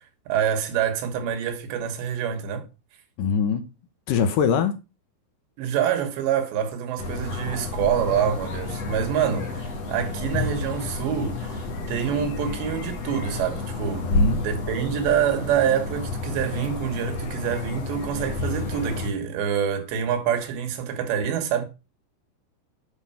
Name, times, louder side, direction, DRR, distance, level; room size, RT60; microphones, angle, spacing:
voice 1, 0.3-2.7 5.6-21.7, right 8 dB, 90° right, 3.8 m, -26 dB
voice 2, 3.2-3.7 4.1-4.7 14.0-14.4, left 7 dB, 70° left, 2.2 m, -23 dB
sound 1, 7.0-19.1, left 2 dB, 45° left, 2.6 m, -30 dB
8.5 x 5.6 x 5.6 m
omnidirectional pair, 4.9 m